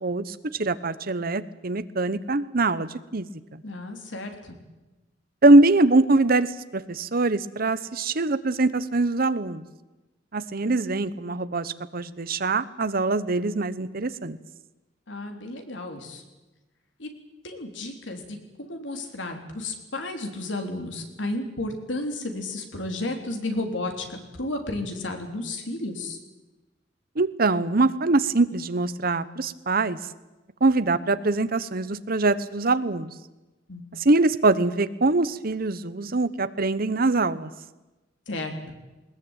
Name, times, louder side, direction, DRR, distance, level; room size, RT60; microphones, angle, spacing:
voice 1, 0.0-3.3 5.4-9.6 10.3-14.4 27.2-30.0 30.6-33.1 33.9-37.5, right 2 dB, 50° right, 14 dB, 1.0 m, -23 dB
voice 2, 3.6-4.6 15.1-16.2 17.0-17.1 17.4-26.2 33.7-33.8 38.3-38.5, left 2 dB, 80° left, 4 dB, 3.5 m, -33 dB
20.5 x 20.0 x 9.0 m, 1.1 s
head